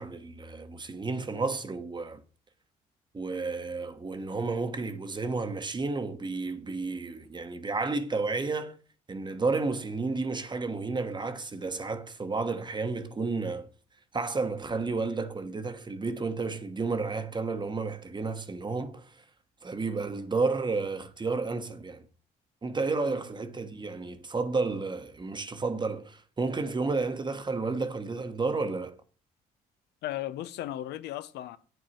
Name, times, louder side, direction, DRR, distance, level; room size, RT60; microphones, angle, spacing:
voice 1, 0.0-2.2 3.1-8.8 9.1-13.7 14.1-19.2 19.6-22.0 22.6-29.0, right 3 dB, 25° right, 1.1 m, -31 dB
voice 2, 30.0-31.6, left 13 dB, 80° left, 0.6 m, -36 dB
8.9 x 7.8 x 4.4 m
supercardioid pair, 80°, 17 cm